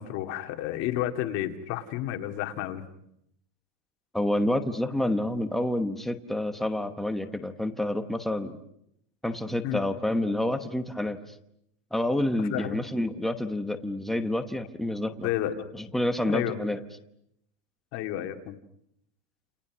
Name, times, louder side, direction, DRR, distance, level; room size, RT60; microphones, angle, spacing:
voice 1, 0.0-2.8 9.6-9.8 12.4-12.8 15.2-15.7 16.3-16.6 17.9-18.6, left 13 dB, 40° left, 5 dB, 2.2 m, -31 dB
voice 2, 4.1-8.6 9.2-11.2 11.9-15.3 15.7-16.8, left 1 dB, ahead, 7 dB, 1.0 m, -28 dB
29.5 x 29.0 x 6.2 m, 0.76 s
supercardioid pair, 165°, 41 cm